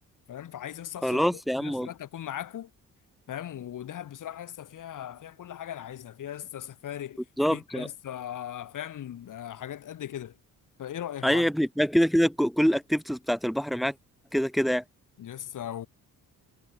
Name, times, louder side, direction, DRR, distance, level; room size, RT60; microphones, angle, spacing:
voice 1, 0.3-2.7 3.3-7.2 7.5-10.4 10.8-11.4 15.2-15.9, left 11 dB, 65° left, 5.7 m, -38 dB
voice 2, 1.0-1.9 7.4-7.9 11.2-13.9 14.3-14.8, equal, ahead, 2.7 m, -25 dB
cardioid pair, 140°, 34 cm